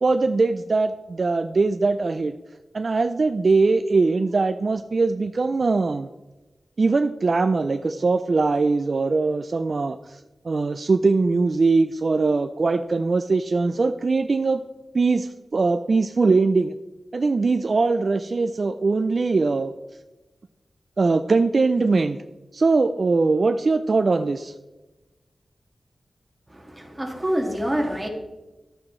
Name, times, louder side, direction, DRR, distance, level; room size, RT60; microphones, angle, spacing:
voice 1, 0.0-2.3 2.7-6.1 6.8-10.2 10.4-14.6 14.9-16.7 17.1-19.7 21.0-22.2 22.5-24.5, right 3 dB, 50° right, 9 dB, 0.3 m, -21 dB
voice 2, 26.5-28.1, equal, 15° right, 1 dB, 1.8 m, -26 dB
11.5 x 8.7 x 3.1 m, 1.1 s
wide cardioid pair, 115°, 0 cm